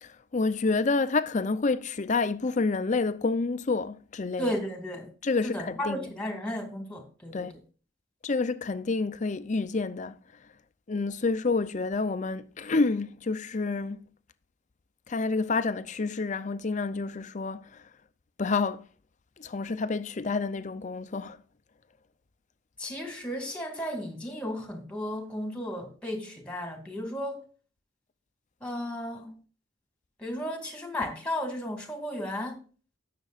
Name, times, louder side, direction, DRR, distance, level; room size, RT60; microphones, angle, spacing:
voice 1, 0.0-4.5 5.2-6.1 7.3-7.6 8.2-10.1 10.9-14.1 15.1-17.8 18.4-18.8 19.4-21.4, left 3 dB, 40° left, 0.6 m, -28 dB
voice 2, 4.4-5.1 5.4-7.5 22.8-27.4 28.6-29.3 30.2-32.6, equal, 5° left, 2.1 m, -34 dB
18.0 x 6.7 x 2.5 m
head